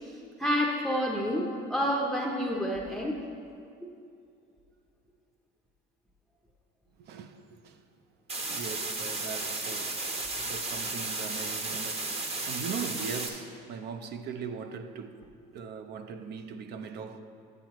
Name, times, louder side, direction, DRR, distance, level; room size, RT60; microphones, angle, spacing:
voice 1, 0.0-3.2 3.8-3.9, equal, ahead, 0.6 m, -29 dB
voice 2, 7.0-7.9 8.5-10.1 10.4-17.2, right 6 dB, 55° right, 0.6 m, -40 dB
sound 1, 8.3-13.3, right 3 dB, 30° right, 0.9 m, -34 dB
9.2 x 8.9 x 3.0 m
cardioid pair, 115°, 20 cm